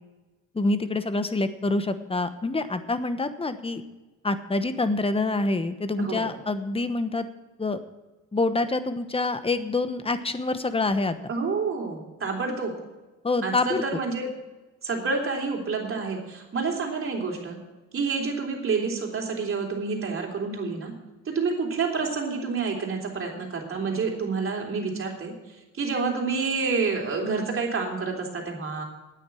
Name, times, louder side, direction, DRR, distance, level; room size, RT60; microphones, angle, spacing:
voice 1, 0.5-3.8 4.2-7.3 7.6-7.8 8.3-11.3 13.2-13.8, left 2 dB, 20° left, 11 dB, 1.1 m, -26 dB
voice 2, 6.0-6.3 11.3-12.7 13.4-14.3 14.8-17.6 17.9-20.9 21.3-25.3 25.8-28.8, right 4 dB, 45° right, 0 dB, 3.5 m, -28 dB
9.4 x 9.2 x 8.4 m, 1.1 s
cardioid pair, 90°, 30 cm